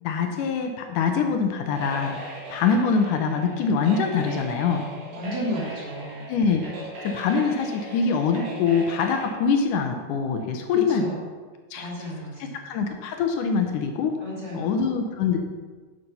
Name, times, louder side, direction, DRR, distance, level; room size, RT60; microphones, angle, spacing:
voice 1, 0.0-2.2 2.5-4.9 6.3-6.6 7.0-11.1 11.7-12.1 12.4-14.1 14.5-15.4, left 5 dB, 75° left, 4 dB, 2.2 m, -24 dB
sound 1, 1.7-9.3, right 2 dB, 55° right, 3.0 m, -39 dB
voice 2, 5.1-6.3 10.7-11.2 11.8-12.6 14.2-14.8, equal, 40° right, -6 dB, 3.5 m, -33 dB
10.5 x 5.7 x 5.5 m, 1.4 s
omnidirectional pair, 3.8 m